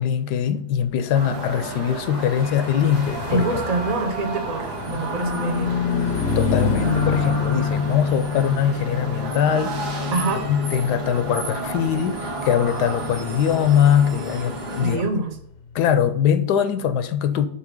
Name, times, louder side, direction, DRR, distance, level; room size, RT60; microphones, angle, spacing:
voice 1, 0.0-3.4 6.4-10.1 10.5-15.0 15.7-17.5, left 9 dB, 80° left, 1.2 m, -22 dB
sound 1, 1.1-15.0, right 2 dB, 80° right, 1.8 m, -32 dB
Car passing by / Truck, 2.1-15.8, left 6 dB, 60° left, 0.8 m, -28 dB
voice 2, 3.3-5.7 10.1-10.4 14.8-15.4, right 3 dB, 40° right, 0.6 m, -25 dB
5.7 x 4.1 x 5.3 m
omnidirectional pair, 1.7 m